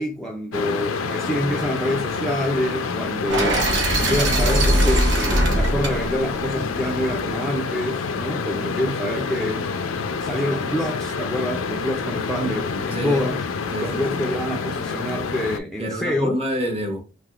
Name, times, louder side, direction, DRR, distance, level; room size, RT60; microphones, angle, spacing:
voice 1, 0.0-3.7 4.0-9.7 10.2-13.4 13.8-16.4, left 1 dB, 5° left, 0.4 m, -26 dB
sound 1, 0.5-15.6, left 5 dB, 85° left, 0.5 m, -28 dB
sound 2, 3.3-7.3, right 1 dB, 60° right, 1.1 m, -21 dB
voice 2, 12.9-13.2 13.7-14.3 15.8-17.0, equal, 30° right, 0.9 m, -28 dB
3.4 x 2.9 x 2.4 m
head